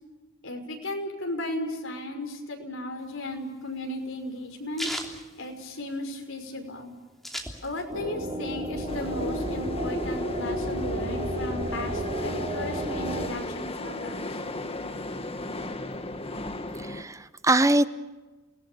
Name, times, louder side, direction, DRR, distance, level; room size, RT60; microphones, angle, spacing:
voice 1, 0.4-4.9 5.4-6.9 7.6-14.3, left 1 dB, 75° left, 4 dB, 5.6 m, -35 dB
sound 1, 3.0-6.2 6.5-6.6 6.8-8.1 8.4-9.6, equal, ahead, 3.2 m, -37 dB
sound 2, 7.9-13.3, right 1 dB, 30° right, 4.4 m, -33 dB
sound 3, 8.9-17.0, left 1 dB, 30° left, 1.8 m, -34 dB
voice 2, 16.7-17.9, right 2 dB, 15° right, 13 dB, 0.7 m, -23 dB
30.0 x 20.0 x 7.0 m, 1.2 s
head